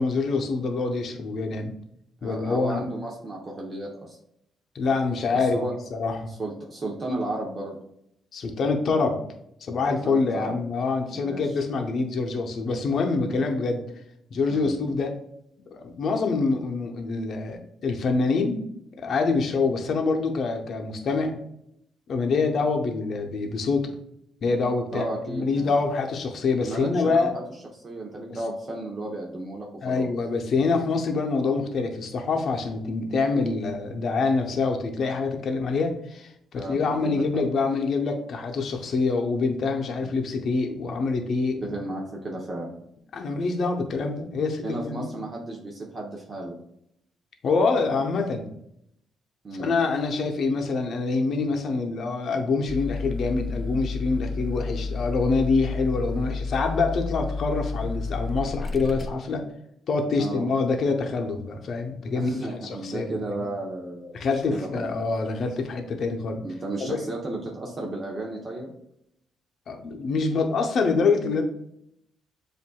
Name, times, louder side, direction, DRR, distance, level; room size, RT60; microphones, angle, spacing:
voice 1, 0.0-1.7 2.2-2.9 4.7-5.6 5.9-6.3 8.3-9.2 9.6-13.8 14.3-15.1 15.7-18.6 19.0-21.4 22.1-23.9 24.4-27.3 29.8-41.8 43.1-45.1 47.4-48.5 49.6-59.4 59.9-63.2 64.1-66.4 66.8-67.0 69.7-71.4, left 4 dB, 60° left, 4 dB, 0.7 m, -25 dB
voice 2, 2.2-4.2 5.3-5.7 6.3-7.8 9.9-10.6 11.1-11.6 13.3-13.4 14.5-14.8 24.9-25.7 26.6-27.4 27.7-30.1 36.6-37.2 41.6-42.7 44.6-46.6 49.4-49.8 60.2-60.5 62.1-64.9 66.4-68.7, right 2 dB, 40° right, -1 dB, 0.9 m, -33 dB
sound 1, 52.7-59.1, left 3 dB, 25° left, 0.5 m, -31 dB
7.3 x 2.6 x 2.3 m, 0.75 s
cardioid pair, 90°, 0 cm